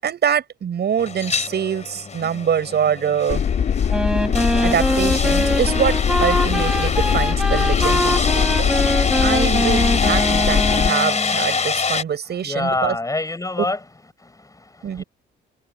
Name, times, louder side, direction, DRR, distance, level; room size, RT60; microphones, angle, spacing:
voice 1, 0.0-3.4 4.6-8.8 9.2-13.0 13.6-13.7 14.8-15.0, right 8 dB, 55° right, 7.5 m, -24 dB
sound 1, 1.0-12.0, left 5 dB, 35° left, 3.0 m, -25 dB
sound 2, 3.3-10.9, left 8 dB, 55° left, 2.3 m, -21 dB
Wind instrument woodwind instrument, 3.9-11.5, equal, 5° right, 7.3 m, -23 dB
voice 2, 12.4-13.8 14.2-15.0, left 2 dB, 15° left, 5.8 m, -26 dB
cardioid pair, 90°, 20 cm